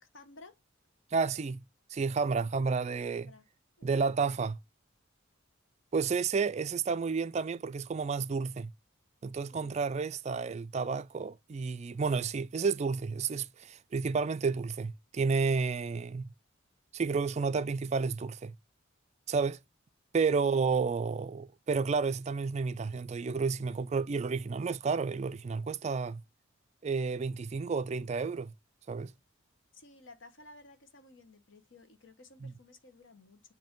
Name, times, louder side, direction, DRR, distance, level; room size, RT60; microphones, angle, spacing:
voice 1, 0.0-0.6 3.1-3.4 3.8-3.9 9.5-9.8 20.4-20.7 29.7-33.4, left 2 dB, 65° left, 1.2 m, -55 dB
voice 2, 1.1-1.6 1.9-3.3 3.8-4.6 5.9-8.7 9.2-16.3 16.9-18.5 19.3-19.6 20.1-26.2 26.8-28.5 28.9-29.1 32.4-32.5, right 5 dB, 35° right, 0.3 m, -31 dB
7.7 x 2.7 x 5.2 m
head